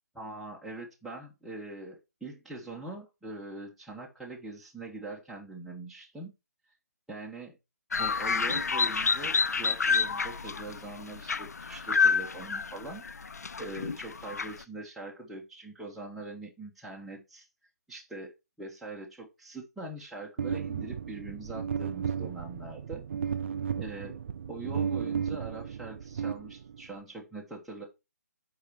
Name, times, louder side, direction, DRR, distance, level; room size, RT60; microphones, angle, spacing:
voice 1, 0.1-6.3 7.1-7.5 8.0-13.3 13.6-17.5 17.9-18.3 18.6-23.0 23.8-27.8, right 2 dB, ahead, -4 dB, 1.0 m, -42 dB
sound 1, 7.9-14.6, left 5 dB, 70° left, 0.5 m, -29 dB
sound 2, 20.4-27.0, right 7 dB, 45° right, 0.4 m, -34 dB
8.1 x 4.7 x 4.4 m, 0.25 s
figure-of-eight pair, 145°, 9 cm